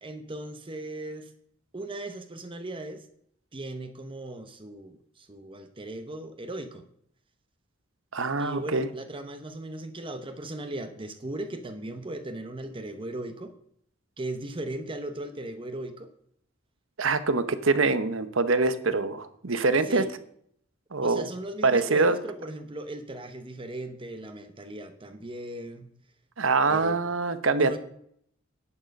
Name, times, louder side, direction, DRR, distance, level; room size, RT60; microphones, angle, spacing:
voice 1, 0.0-1.3 1.7-3.1 3.5-6.8 8.4-13.5 14.2-16.1 19.8-20.1 21.0-25.9 26.7-27.0 27.5-27.8, right 1 dB, 25° right, 8 dB, 0.8 m, -37 dB
voice 2, 8.1-8.9 17.0-20.0 20.9-21.3 21.6-22.2 26.4-27.8, right 3 dB, 70° right, 12 dB, 1.0 m, -24 dB
11.0 x 9.1 x 5.3 m, 0.68 s
head